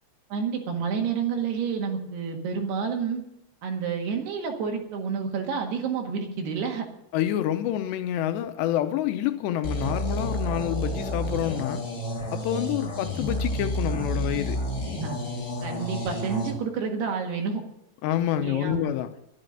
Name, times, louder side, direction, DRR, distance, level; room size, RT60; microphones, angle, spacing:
voice 1, 0.3-3.2 3.6-6.9 15.0-15.2 15.6-17.6 18.4-18.9, right 6 dB, 70° right, 3.7 m, -29 dB
voice 2, 7.1-11.8 12.3-14.6 18.0-19.1, left 12 dB, 80° left, 2.9 m, -27 dB
sound 1, 9.6-16.5, equal, 35° left, 1.7 m, -30 dB
12.0 x 11.0 x 6.6 m
omnidirectional pair, 5.0 m